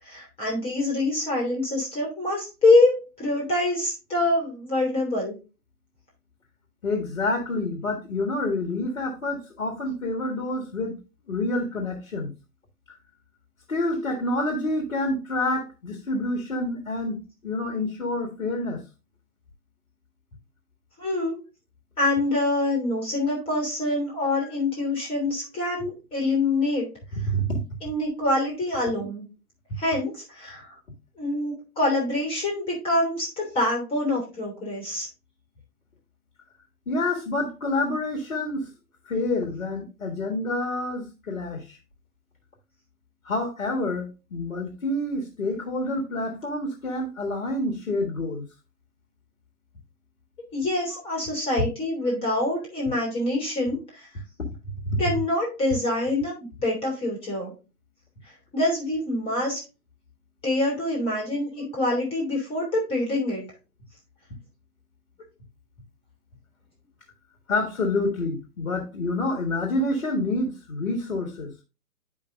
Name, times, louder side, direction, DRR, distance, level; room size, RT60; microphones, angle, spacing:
voice 1, 0.0-5.4 21.0-21.4 22.0-26.9 27.8-29.2 29.8-30.7 31.2-35.1 50.5-54.1 55.0-56.3 56.6-57.5 58.5-59.6 60.4-63.4, left 2 dB, 10° left, 2.5 m, -25 dB
voice 2, 6.8-11.0 11.3-12.3 13.7-18.8 24.4-24.5 25.8-25.9 27.3-27.6 36.9-38.7 39.0-41.8 43.2-48.4 50.9-51.0 54.8-55.0 61.6-61.7 67.5-71.5, left 2 dB, 55° left, 1.7 m, -28 dB
10.0 x 5.2 x 2.5 m
figure-of-eight pair, 125°, 48 cm